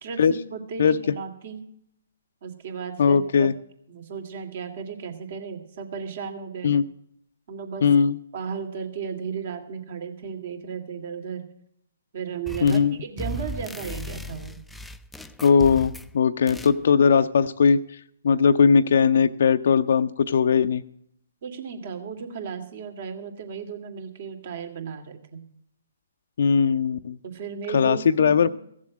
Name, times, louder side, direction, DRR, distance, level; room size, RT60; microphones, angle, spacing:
voice 1, 0.0-1.6 2.4-3.5 3.9-6.7 7.5-7.8 8.3-11.4 12.1-14.6 21.4-25.4 27.2-28.5, right 6 dB, 55° right, 5 dB, 2.5 m, -35 dB
voice 2, 3.0-3.5 6.6-6.8 7.8-8.2 12.6-13.0 15.4-20.8 26.4-27.2 27.7-28.5, left 6 dB, 65° left, 9 dB, 0.5 m, -19 dB
sound 1, 12.5-12.9 13.2-16.1 16.5-16.8, equal, 5° left, 0.5 m, -36 dB
16.0 x 7.4 x 7.4 m, 0.71 s
hypercardioid pair, 140°, 0 cm